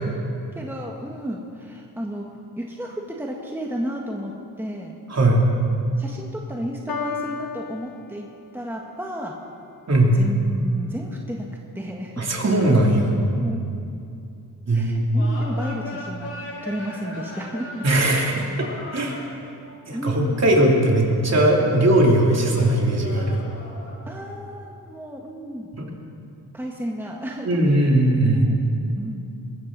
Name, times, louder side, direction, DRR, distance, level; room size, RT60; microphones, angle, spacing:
voice 1, 0.5-2.3 2.5-5.0 5.9-8.3 8.5-9.4 10.1-11.5 11.7-12.3 13.4-13.6 14.7-17.8 19.9-20.4 24.1-25.7 26.5-27.9 28.2-28.6 28.9-29.2, equal, 5° right, -1 dB, 1.5 m, -32 dB
voice 2, 5.1-5.5 9.9-10.2 12.2-13.1 14.7-15.1 17.8-18.5 18.9-19.2 19.9-23.4 25.8-25.9 27.4-28.5, right 1 dB, 45° right, -1 dB, 3.2 m, -19 dB
Piano, 6.9-8.9, left 6 dB, 70° left, 1.4 m, -34 dB
sound 1, 15.1-21.7 22.1-24.3, left 1 dB, 40° left, 5.0 m, -39 dB
22.0 x 14.0 x 4.1 m, 2.5 s
cardioid pair, 80°, 37 cm